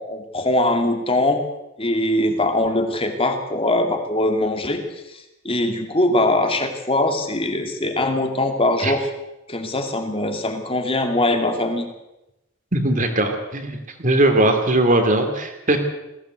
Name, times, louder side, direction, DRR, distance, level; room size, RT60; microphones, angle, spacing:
voice 1, 0.0-1.4 1.8-4.8 5.1-9.1 9.5-11.9, left 1 dB, 25° left, 5 dB, 2.5 m, -22 dB
voice 2, 12.7-15.8, right 1 dB, 35° right, 6 dB, 3.0 m, -19 dB
21.0 x 16.0 x 8.1 m, 0.94 s
head